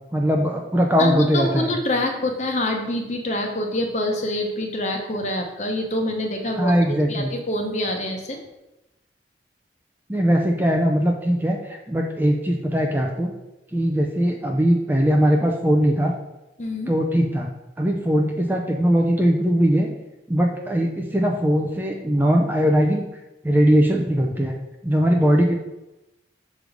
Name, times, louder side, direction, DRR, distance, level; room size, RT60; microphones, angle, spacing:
voice 1, 0.1-1.7 6.6-7.3 10.1-13.3 13.7-16.1 16.9-17.5 17.8-19.9 20.3-23.0 23.4-24.5 24.8-25.5, equal, 10° right, 1 dB, 0.5 m, -20 dB
voice 2, 1.0-8.4 16.6-16.9, left 1 dB, 40° left, 3 dB, 0.8 m, -26 dB
6.5 x 3.2 x 5.0 m, 0.95 s
head